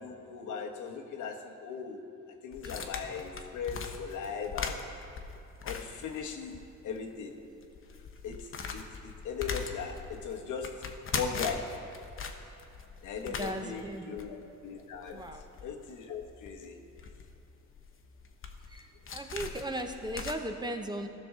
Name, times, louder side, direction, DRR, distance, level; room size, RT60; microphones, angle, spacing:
voice 1, 0.0-2.0 2.3-4.8 5.6-7.4 8.2-11.8 13.0-15.2 15.6-16.8, left 6 dB, 80° left, 2 dB, 1.1 m, -39 dB
sound 1, 2.5-6.7 7.0-7.1 7.5-20.3, left 5 dB, 45° left, 0.9 m, -41 dB
voice 2, 13.2-14.1 15.1-15.4 18.7-21.1, right 1 dB, 15° right, 5 dB, 0.7 m, -37 dB
15.5 x 6.0 x 3.7 m, 2.9 s
cardioid pair, 90°, 30 cm